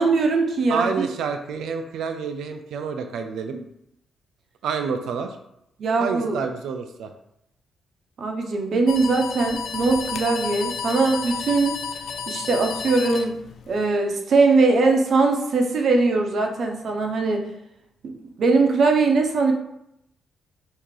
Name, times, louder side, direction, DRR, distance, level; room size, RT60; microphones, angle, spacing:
voice 1, 0.0-1.1 5.8-6.4 8.2-11.8 12.3-13.4 13.7-17.4 18.2-19.5, right 3 dB, 55° right, 3 dB, 0.7 m, -21 dB
voice 2, 0.7-3.6 4.6-5.4 6.0-7.1, right 6 dB, 85° right, 6 dB, 0.4 m, -28 dB
sound 1, 8.9-13.8, left 6 dB, 65° left, 0.4 m, -32 dB
5.8 x 2.8 x 3.2 m, 0.79 s
cardioid pair, 140°, 0 cm